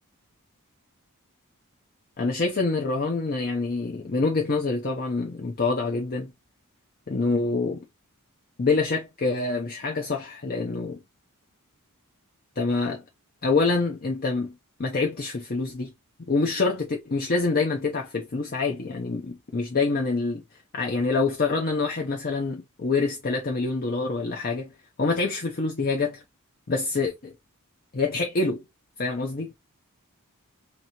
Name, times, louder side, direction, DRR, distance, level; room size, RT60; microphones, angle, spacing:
voice 1, 2.2-6.3 7.1-7.9 8.6-11.0 12.6-13.0 13.4-15.9 16.2-20.4 20.7-24.7 25.0-26.2 26.7-27.3 27.9-28.6 29.0-29.5, left 3 dB, 45° left, 0.6 m, -26 dB
3.0 x 2.8 x 4.1 m
head